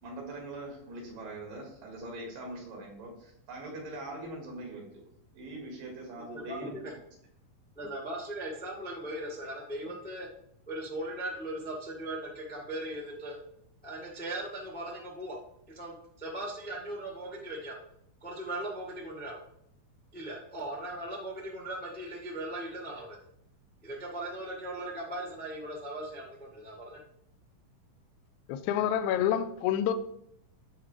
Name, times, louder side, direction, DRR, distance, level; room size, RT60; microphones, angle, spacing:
voice 1, 0.0-4.8 5.3-6.7, right 2 dB, 80° right, 3.7 m, -42 dB
voice 2, 6.3-6.9 7.7-10.3 10.7-13.4 13.8-15.4 15.7-17.7 18.2-19.4 20.1-23.2 23.8-27.0, right 1 dB, 5° left, 0.7 m, -38 dB
voice 3, 28.5-29.9, left 10 dB, 80° left, 1.7 m, -27 dB
14.5 x 4.9 x 3.4 m
omnidirectional pair, 3.8 m